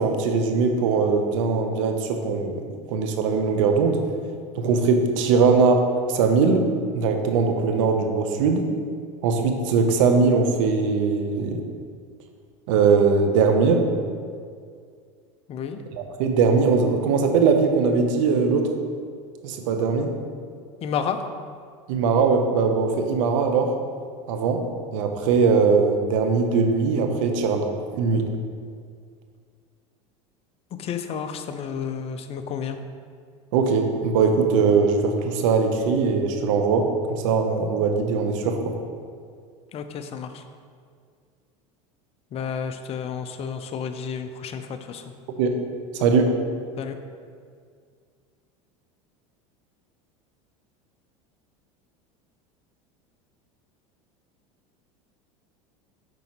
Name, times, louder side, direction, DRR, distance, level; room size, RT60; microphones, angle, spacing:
voice 1, 0.0-4.0 4.5-6.7 6.9-8.6 9.2-11.6 12.7-13.9 16.2-18.7 19.4-20.1 21.9-23.7 24.3-24.6 24.9-28.3 33.5-38.7 45.4-45.5 45.9-46.3, right 4 dB, 75° right, 5 dB, 0.7 m, -21 dB
voice 2, 20.8-21.2 30.8-32.8 39.7-40.4 42.3-45.1 46.8-47.0, left 7 dB, 35° left, 8 dB, 0.5 m, -31 dB
7.6 x 5.3 x 2.9 m, 2.1 s
supercardioid pair, 100°, 17 cm